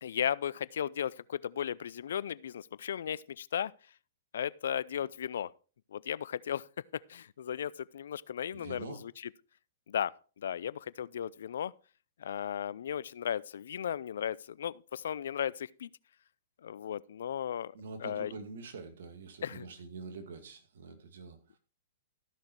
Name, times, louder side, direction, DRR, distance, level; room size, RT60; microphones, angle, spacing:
voice 1, 0.0-3.7 4.3-5.5 5.9-6.6 6.9-9.3 9.9-11.7 12.2-15.9 16.6-17.7 18.0-18.3 19.4-19.7, left 9 dB, 70° left, 0.4 m, -35 dB
voice 2, 8.5-9.0 17.7-21.6, right 4 dB, 70° right, 2.2 m, -45 dB
13.5 x 6.5 x 4.5 m
hypercardioid pair, 115°, 0 cm